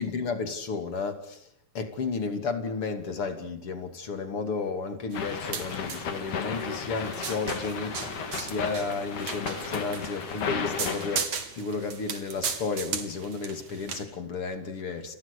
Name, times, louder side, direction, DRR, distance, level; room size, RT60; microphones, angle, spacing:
voice 1, 0.0-15.1, left 4 dB, 45° left, 7 dB, 3.5 m, -33 dB
sound 1, 5.1-11.2, left 6 dB, 70° left, 4.1 m, -34 dB
sound 2, 5.1-14.0, right 6 dB, 65° right, 4.0 m, -37 dB
sound 3, 6.5-13.5, right 2 dB, 35° right, 4.6 m, -54 dB
29.5 x 25.5 x 6.9 m, 0.65 s
omnidirectional pair, 3.6 m